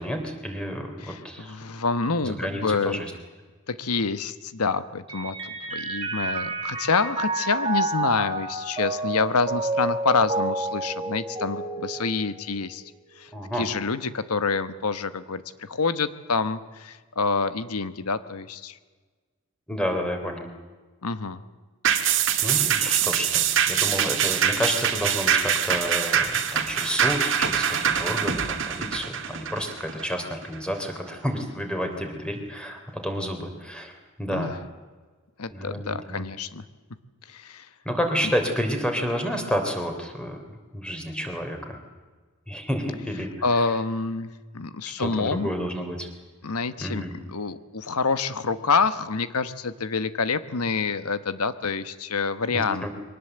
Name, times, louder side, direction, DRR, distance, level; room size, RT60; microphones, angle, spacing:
voice 1, 0.0-1.5 2.2-3.1 13.3-13.6 19.7-20.5 22.4-34.5 35.5-36.2 37.8-41.8 42.5-43.7 45.0-46.1 46.8-47.1 52.5-52.9, equal, 5° left, 4 dB, 3.3 m, -30 dB
voice 2, 1.0-3.0 3.7-12.8 13.2-18.8 21.0-21.4 34.3-34.6 35.4-36.6 37.3-37.7 38.2-38.3 43.4-45.5 46.4-52.9, left 4 dB, 85° left, 12 dB, 1.1 m, -27 dB
Mallet percussion, 5.1-12.8, right 2 dB, 20° right, 3.5 m, -30 dB
sound 1, 21.8-30.6 31.0-31.1, right 8 dB, 55° right, 1.9 m, -24 dB
23.0 x 19.0 x 7.9 m, 1.4 s
head